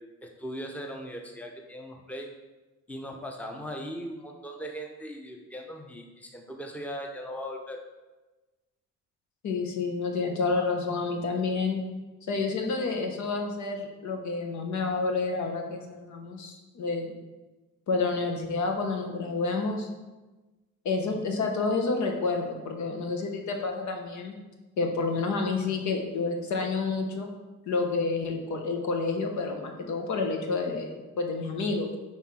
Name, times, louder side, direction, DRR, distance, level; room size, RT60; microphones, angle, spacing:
voice 1, 0.0-2.3 2.9-7.8, equal, 5° left, 2 dB, 0.8 m, -39 dB
voice 2, 9.4-11.8 12.3-17.2 17.9-19.9 20.8-24.4 24.8-27.3 27.6-32.0, left 3 dB, 70° left, 3 dB, 1.1 m, -29 dB
5.8 x 4.9 x 4.3 m, 1.2 s
cardioid pair, 90°, 30 cm